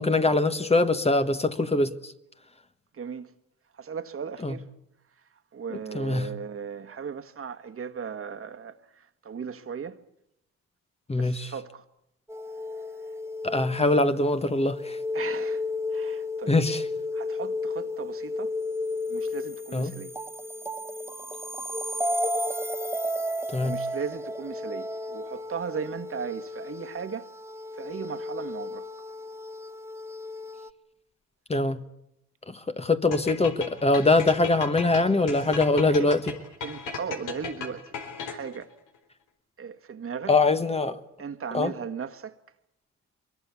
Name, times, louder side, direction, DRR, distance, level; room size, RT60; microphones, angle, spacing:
voice 1, 0.0-2.1 4.4-4.5 5.9-6.3 11.1-11.5 13.4-15.0 16.5-16.8 19.7-19.9 23.5-23.8 31.5-31.8 32.5-36.2 40.3-41.0 41.5-41.7, left 2 dB, 20° left, 1.4 m, -23 dB
voice 2, 2.9-3.3 3.7-4.7 5.2-10.0 11.1-11.8 13.1-13.2 15.1-15.6 15.9-16.6 17.1-18.5 19.1-20.1 23.6-27.3 27.7-28.9 35.9-36.1 36.6-37.9 38.2-38.7 39.6-40.4 41.2-42.4, right 6 dB, 45° right, 1.7 m, -37 dB
sound 1, 12.3-30.7, left 2 dB, 10° right, 1.0 m, -33 dB
sound 2, 33.1-38.6, left 5 dB, 90° left, 4.3 m, -36 dB
23.5 x 22.5 x 8.4 m
cardioid pair, 90°, 30 cm